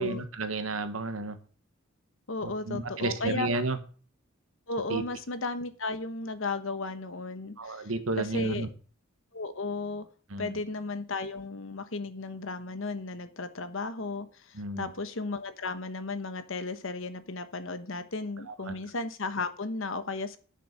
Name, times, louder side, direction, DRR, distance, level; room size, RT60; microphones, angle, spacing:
voice 1, 0.0-1.4 2.4-3.8 4.9-5.0 7.6-8.7 10.3-10.5 14.5-14.9 18.5-18.7, right 3 dB, 85° right, 10 dB, 1.4 m, -32 dB
voice 2, 2.3-3.5 4.7-7.9 8.2-8.7 9.3-10.1 10.4-20.4, left 3 dB, 70° left, 11 dB, 1.2 m, -34 dB
9.5 x 6.8 x 6.7 m, 0.40 s
head